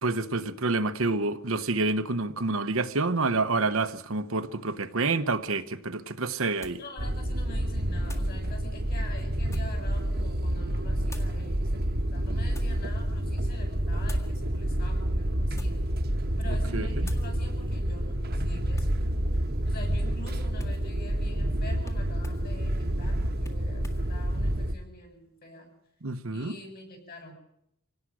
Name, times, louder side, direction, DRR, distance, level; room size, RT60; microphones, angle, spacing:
voice 1, 0.0-6.8 16.7-17.1 26.0-26.5, right 3 dB, 60° right, 1.1 m, -28 dB
sound 1, 5.5-5.6 6.6-6.9 8.0-8.4 9.1-9.8 11.1-11.4 12.1-12.8 14.0-14.3 15.4-15.9 16.3-16.6 17.0-17.3 18.7-19.0 20.2-20.9 21.8-22.5 23.4-24.1, left 1 dB, 15° left, 1.9 m, -46 dB
voice 2, 6.8-15.8 16.4-19.0 19.7-25.7 26.3-27.3, left 1 dB, 45° left, 7.1 m, -46 dB
sound 2, 7.0-24.7, right 1 dB, 45° right, 1.3 m, -28 dB
26.0 x 18.0 x 6.3 m
head